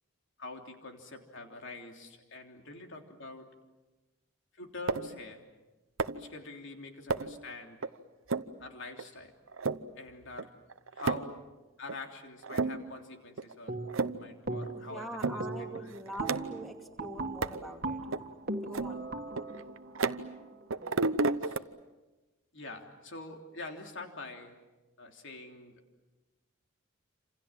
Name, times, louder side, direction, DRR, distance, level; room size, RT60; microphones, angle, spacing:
voice 1, 0.4-3.5 4.5-5.4 6.1-7.8 8.6-9.3 10.0-10.5 10.9-11.4 11.8-15.9 21.4-21.6 22.5-24.6 25.0-25.8, left 3 dB, 60° left, 4 dB, 3.3 m, -45 dB
sound 1, 4.9-5.2 6.0-6.3 7.1-7.4 7.8-7.9 8.3-8.5 9.0-9.1 9.5-9.8 10.4-10.5 10.7-11.4 11.9-12.0 12.4-13.0 13.4-13.5 13.8-14.3 14.6-14.7 15.2-15.4 15.7-16.7 17.4-17.6 18.1-18.2 18.7-20.4 20.7-21.6, right 3 dB, 65° right, 0.9 m, -32 dB
sound 2, 13.7-14.1 14.5-14.9 15.3-21.1, right 2 dB, 45° right, 2.0 m, -39 dB
voice 2, 14.7-18.1 18.6-19.1, right 1 dB, ahead, 3 dB, 2.7 m, -43 dB
28.0 x 27.5 x 7.5 m, 1.1 s
head